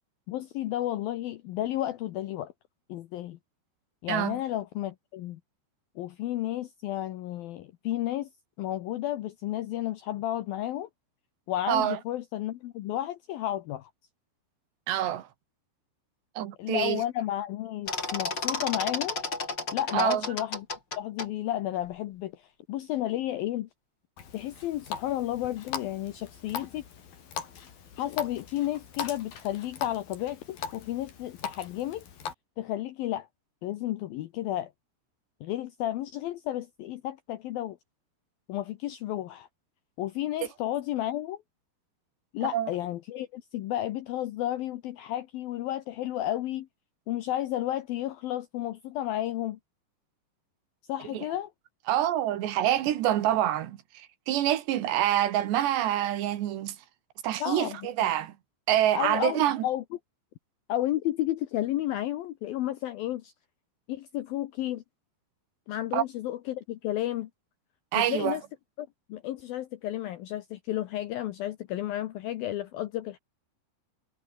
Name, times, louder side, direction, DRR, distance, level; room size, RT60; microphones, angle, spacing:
voice 1, 0.3-2.5 2.9-3.4 4.0-5.4 6.0-8.3 8.6-10.9 11.5-13.9 16.6-19.2 19.7-20.7 21.0-23.7 24.3-26.8 28.0-32.0 32.6-33.3 33.6-34.7 35.4-37.8 38.5-39.5 40.0-41.4 42.3-46.7 47.1-49.6 50.9-51.5 57.4-58.1 58.9-59.8 60.7-63.3 63.9-64.8 65.7-67.3 68.0-68.4 68.8-73.2, left 13 dB, 75° left, 2.2 m, -32 dB
voice 2, 4.1-4.4 11.7-12.0 14.9-15.3 16.4-17.0 19.9-20.3 42.4-42.7 51.1-51.2 51.9-56.8 57.2-58.3 58.7-59.6 65.9-66.0 67.9-68.4, right 12 dB, 70° right, 3.6 m, -26 dB
sound 1, 17.9-21.3, left 3 dB, 25° left, 4.9 m, -32 dB
Water tap faucet, 24.2-32.3, left 7 dB, 50° left, 4.9 m, -40 dB
omnidirectional pair, 5.4 m